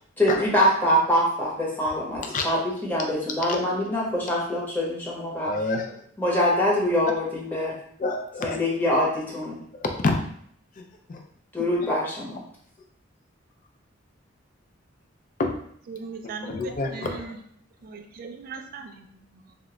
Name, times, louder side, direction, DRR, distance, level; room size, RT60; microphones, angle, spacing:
voice 1, 0.2-5.5 6.2-7.7 8.4-9.6 11.5-12.4, equal, 10° left, -5 dB, 0.7 m, -24 dB
voice 2, 5.5-5.9 8.0-8.6 9.8-10.2 11.1-11.2 15.4-15.6 16.5-17.3, left 3 dB, 40° left, 3 dB, 0.4 m, -27 dB
voice 3, 15.9-17.4 17.8-19.5, right 4 dB, 45° right, 5 dB, 0.3 m, -39 dB
2.1 x 2.1 x 3.6 m, 0.65 s
head